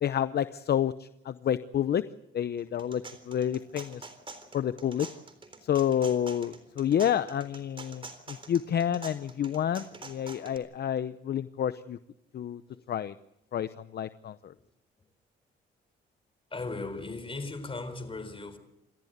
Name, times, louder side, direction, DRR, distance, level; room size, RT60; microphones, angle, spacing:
voice 1, 0.0-2.0 2.3-4.1 4.5-5.1 5.6-12.0 12.3-12.6 12.9-13.1 13.5-14.5, left 9 dB, 55° left, 0.8 m, -29 dB
sound 1, 2.6-10.6, right 3 dB, 25° right, 3.8 m, -46 dB
voice 2, 16.5-18.6, left 3 dB, 25° left, 4.0 m, -37 dB
29.0 x 13.5 x 8.1 m
cardioid pair, 90°, 20 cm